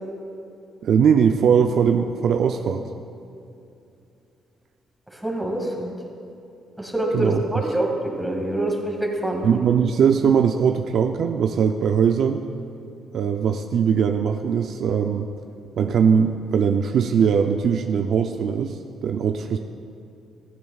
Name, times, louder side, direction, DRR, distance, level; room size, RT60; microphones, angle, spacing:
voice 1, 0.8-2.9 7.1-7.4 9.4-12.4 13.1-15.3 15.8-19.6, right 7 dB, 70° right, 5 dB, 0.5 m, -20 dB
voice 2, 5.1-5.9 6.8-9.6, right 1 dB, 5° right, -1 dB, 2.1 m, -25 dB
16.5 x 14.5 x 2.4 m, 2.6 s
cardioid pair, 90°, 0 cm